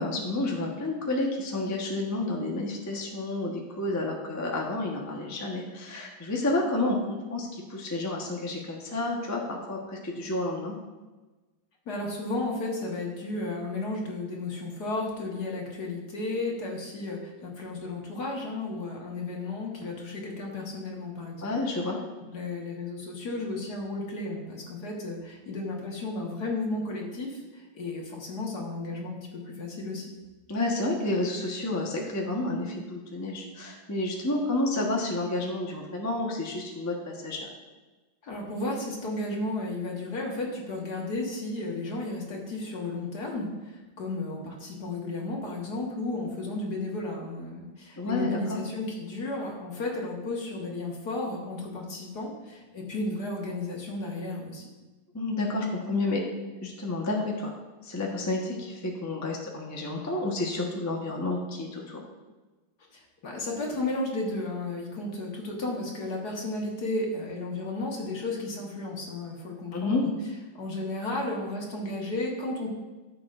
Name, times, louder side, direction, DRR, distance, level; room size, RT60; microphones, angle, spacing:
voice 1, 0.0-10.7 21.4-22.0 30.5-37.5 48.0-48.6 55.1-56.2 56.6-57.5 57.8-62.0 69.7-70.0, left 2 dB, 15° left, -1 dB, 0.8 m, -30 dB
voice 2, 11.9-21.5 22.3-30.1 38.2-54.6 62.9-70.1 70.5-72.7, left 2 dB, 55° left, -1 dB, 2.0 m, -33 dB
14.0 x 7.0 x 2.5 m, 1.2 s
omnidirectional pair, 2.0 m